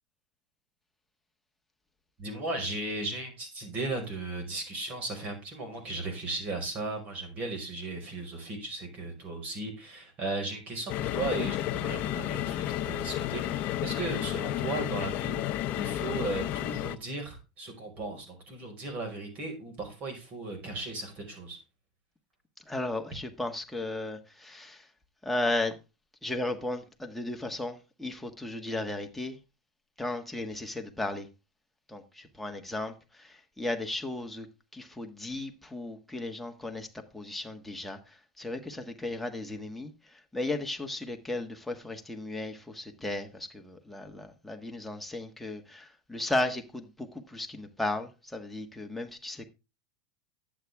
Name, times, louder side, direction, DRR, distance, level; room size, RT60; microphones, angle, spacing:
voice 1, 2.2-21.6, right 2 dB, 40° right, 5.1 m, -36 dB
sound 1, 10.9-17.0, left 13 dB, 45° left, 0.7 m, -32 dB
voice 2, 22.6-24.9 25.2-25.8 26.2-29.4 30.0-31.3 31.9-34.5 34.7-49.5, left 2 dB, 5° left, 1.5 m, -35 dB
11.0 x 8.5 x 3.5 m
supercardioid pair, 125°, 4 cm